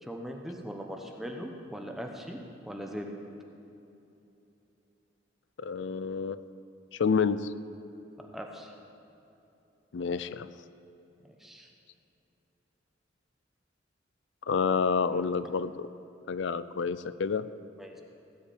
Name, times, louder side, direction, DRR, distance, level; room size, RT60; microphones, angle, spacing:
voice 1, 0.0-3.1 8.3-8.7 11.4-11.7 15.1-15.2 17.8-18.0, equal, ahead, 1 dB, 0.9 m, -40 dB
voice 2, 5.6-6.4 6.9-7.5 9.9-10.5 14.5-15.9 16.3-17.4, left 5 dB, 70° left, 14 dB, 0.5 m, -29 dB
17.5 x 5.8 x 8.5 m, 3.0 s
head